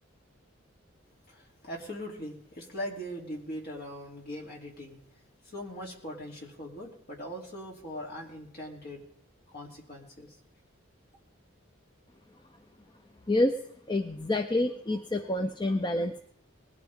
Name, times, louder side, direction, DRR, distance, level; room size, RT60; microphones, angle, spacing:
voice 1, 1.3-5.0 5.4-9.0 9.5-10.3, equal, 50° left, -1 dB, 3.3 m, -40 dB
voice 2, 13.3-13.6 13.9-16.2, left 1 dB, 25° left, 7 dB, 0.6 m, -28 dB
20.0 x 13.5 x 3.7 m, 0.70 s
head